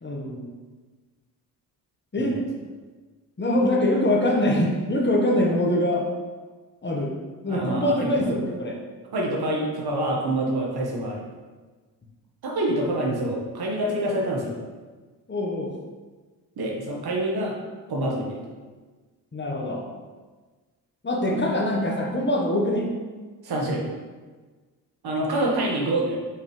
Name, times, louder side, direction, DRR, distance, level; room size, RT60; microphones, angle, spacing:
voice 1, 0.0-0.5 2.1-2.4 3.4-6.0 6.8-7.1 7.4-8.8 15.3-15.7 19.3-19.8 21.0-22.9, left 1 dB, 25° left, 0 dB, 1.3 m, -23 dB
voice 2, 7.5-8.1 9.1-11.2 12.4-14.6 16.6-17.5 17.9-18.4 21.3-21.5 23.4-23.8 25.0-26.2, right 1 dB, 60° right, -2 dB, 1.6 m, -26 dB
5.7 x 5.2 x 3.3 m, 1.4 s
supercardioid pair, 55°, 42 cm